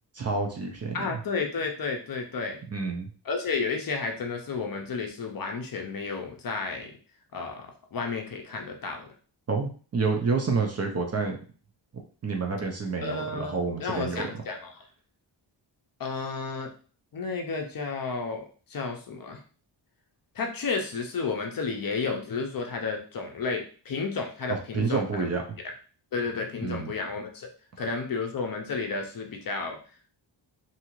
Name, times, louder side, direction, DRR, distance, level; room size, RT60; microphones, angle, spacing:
voice 1, 0.1-1.2 2.7-3.1 9.5-11.4 12.2-14.3 24.5-25.4 26.6-26.9, right 4 dB, 35° right, 2 dB, 0.4 m, -29 dB
voice 2, 0.9-2.6 3.3-6.9 7.3-9.1 13.0-14.8 16.0-16.7 17.1-18.4 18.7-19.4 20.3-25.3 26.1-27.5 27.8-29.8, left 4 dB, 50° left, 3 dB, 0.5 m, -32 dB
2.7 x 2.4 x 2.9 m, 0.40 s
wide cardioid pair, 165°, 46 cm